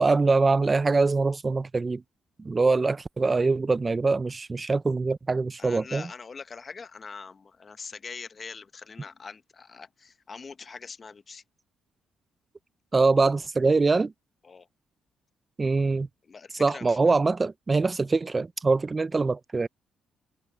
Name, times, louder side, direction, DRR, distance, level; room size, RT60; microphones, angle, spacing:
voice 1, 0.0-2.0 2.4-6.0 12.9-14.1 15.6-16.1 16.5-19.7, right 3 dB, 25° right, 0.5 m, -23 dB
voice 2, 5.6-11.4 14.4-14.7 16.3-17.2, left 5 dB, 35° left, 0.9 m, -43 dB
cardioid pair, 90°, 0 cm